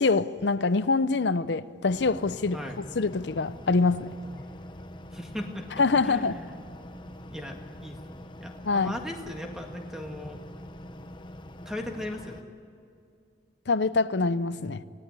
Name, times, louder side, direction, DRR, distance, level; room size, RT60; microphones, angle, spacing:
voice 1, 0.0-2.6 2.9-4.1 5.8-6.4 8.6-9.0 13.7-14.8, left 3 dB, 70° left, 0.6 m, -25 dB
sound 1, 1.9-12.4, equal, 25° left, 1.0 m, -44 dB
voice 2, 5.1-5.7 6.0-6.6 7.3-10.4 11.7-12.4, left 1 dB, 5° right, 1.9 m, -38 dB
27.5 x 17.5 x 9.8 m
head